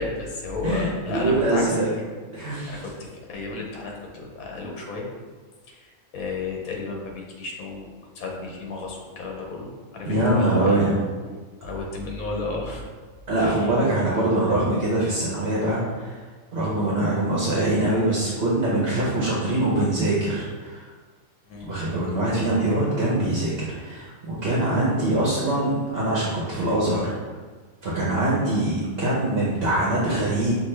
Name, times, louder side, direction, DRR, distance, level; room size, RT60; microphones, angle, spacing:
voice 1, 0.0-1.7 2.7-2.9 3.3-5.1 6.1-10.8 11.6-12.8 13.4-13.6 21.5-21.7, left 3 dB, 80° left, 0 dB, 1.2 m, -32 dB
voice 2, 0.6-1.9 2.3-2.8 10.0-11.0 13.3-16.2 16.5-20.8 21.6-27.1 27.8-30.5, right 1 dB, 50° right, -5 dB, 1.0 m, -23 dB
5.8 x 2.6 x 3.2 m, 1.4 s
omnidirectional pair, 1.5 m